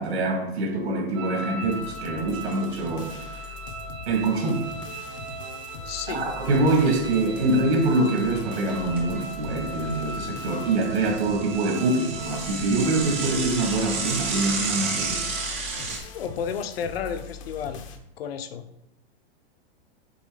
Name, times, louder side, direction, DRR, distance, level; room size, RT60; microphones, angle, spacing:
voice 1, 0.0-3.1 4.1-4.7 6.1-15.2, right 2 dB, 80° right, 0 dB, 2.7 m, -24 dB
sound 1, 1.1-15.5, right 3 dB, 35° right, 0.8 m, -38 dB
sound 2, 1.6-18.0, left 6 dB, 30° left, 0.5 m, -41 dB
voice 2, 5.9-6.2 16.1-17.8 18.2-18.6, left 7 dB, 70° left, 9 dB, 0.7 m, -32 dB
Bicycle / Mechanisms, 6.4-7.1 7.4-7.5 7.8-7.9 8.5-9.7 10.1-16.0, right 4 dB, 15° right, 0.3 m, -32 dB
7.0 x 3.6 x 4.9 m, 0.83 s
supercardioid pair, 175°, 31 cm